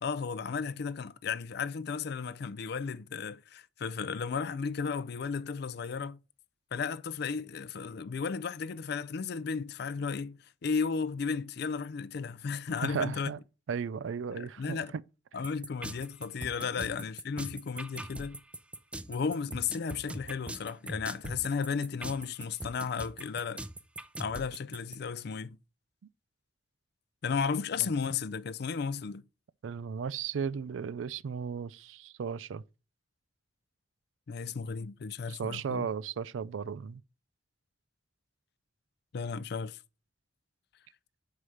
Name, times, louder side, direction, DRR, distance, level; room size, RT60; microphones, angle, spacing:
voice 1, 0.0-6.2 6.7-13.3 14.3-14.9 15.3-18.4 19.1-23.6 24.2-25.6 27.2-29.2 34.3-35.9 39.1-39.8, left 5 dB, 60° left, 0.4 m, -34 dB
voice 2, 12.8-13.4 13.7-14.8 16.8-16.9 29.6-32.6 35.3-37.0, right 6 dB, 85° right, 0.4 m, -35 dB
sound 1, 15.4-25.0, right 1 dB, 5° right, 0.4 m, -41 dB
6.3 x 4.8 x 5.6 m
head